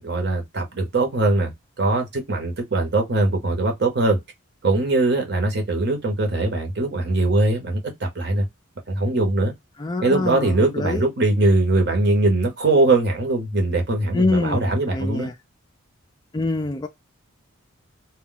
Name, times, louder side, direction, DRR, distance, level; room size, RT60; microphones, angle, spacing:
voice 1, 0.0-1.5 1.8-4.2 4.6-8.5 8.9-9.5 10.0-15.3, right 2 dB, 55° right, 0.9 m, -21 dB
voice 2, 9.8-11.1 14.1-15.3 16.3-16.9, left 2 dB, 20° left, 0.3 m, -25 dB
2.2 x 2.1 x 3.7 m
head